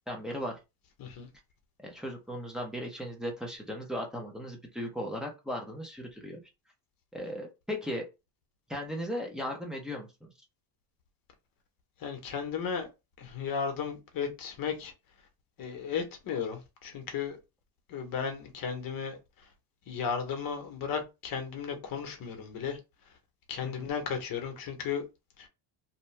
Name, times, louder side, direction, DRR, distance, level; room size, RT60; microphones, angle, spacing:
voice 1, 0.1-0.6 1.8-6.4 7.1-8.0 8.7-10.3 23.6-23.7, equal, ahead, 0.4 m, -37 dB
voice 2, 12.0-12.9 13.2-14.9 15.6-17.4 17.9-19.2 19.9-22.8 23.5-25.0 25.4-25.5, left 6 dB, 45° left, 0.9 m, -35 dB
2.7 x 2.2 x 3.1 m
cardioid pair, 150°, 50 cm